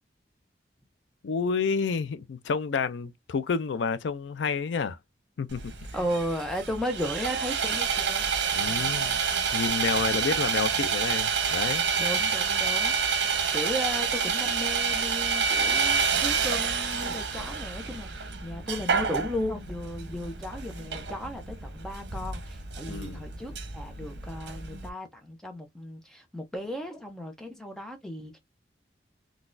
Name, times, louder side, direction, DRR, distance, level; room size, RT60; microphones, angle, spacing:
voice 1, 1.2-5.0 5.4-5.7 8.5-9.2 9.5-11.9 22.9-23.3, left 5 dB, 85° left, 0.4 m, -29 dB
Sawing, 5.5-24.9, right 6 dB, 75° right, 0.8 m, -28 dB
voice 2, 5.9-8.3 10.1-10.4 10.7-10.9 12.0-28.4, equal, 5° left, 0.6 m, -35 dB
3.9 x 2.4 x 2.5 m
head